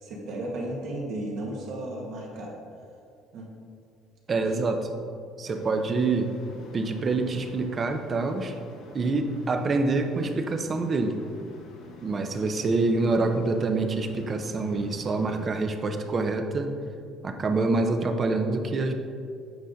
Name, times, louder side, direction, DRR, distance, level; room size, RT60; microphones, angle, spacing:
voice 1, 0.0-2.5 3.3-3.5, right 1 dB, 65° right, -2 dB, 1.6 m, -34 dB
voice 2, 4.3-5.0 5.4-6.3 6.7-8.6 8.9-11.2 12.0-16.7 17.2-18.9, right 3 dB, 30° right, 6 dB, 0.6 m, -26 dB
sound 1, 5.4-15.5, left 3 dB, 65° left, 0.9 m, -47 dB
8.1 x 4.9 x 3.9 m, 2.4 s
cardioid pair, 130°, 0 cm